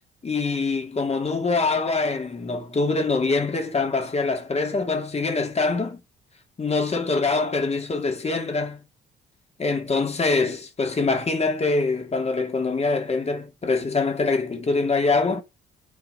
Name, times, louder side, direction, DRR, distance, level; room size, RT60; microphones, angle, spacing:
voice 1, 0.2-6.0 6.6-8.8 9.6-15.4, left 3 dB, 30° left, 2.5 m, -24 dB
8.9 x 4.9 x 4.8 m
cardioid pair, 90°, 20 cm